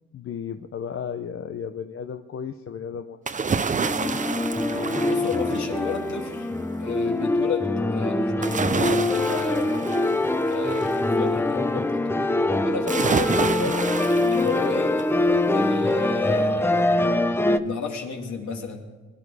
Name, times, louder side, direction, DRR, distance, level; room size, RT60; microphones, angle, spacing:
voice 1, 0.1-3.2, left 7 dB, 45° left, 7 dB, 0.8 m, -34 dB
sound 1, 3.3-6.1 8.4-11.0 12.9-15.2 15.6-15.7, right 5 dB, 25° right, 0.7 m, -29 dB
sound 2, 3.8-17.6, left 2 dB, 10° left, 0.7 m, -24 dB
voice 2, 5.0-6.5 6.8-10.2 10.5-13.8 14.3-15.0 15.5-17.0 17.5-18.9, left 5 dB, 65° left, 1 dB, 3.0 m, -33 dB
21.5 x 11.5 x 5.0 m, 1.3 s
cardioid pair, 90°, 30 cm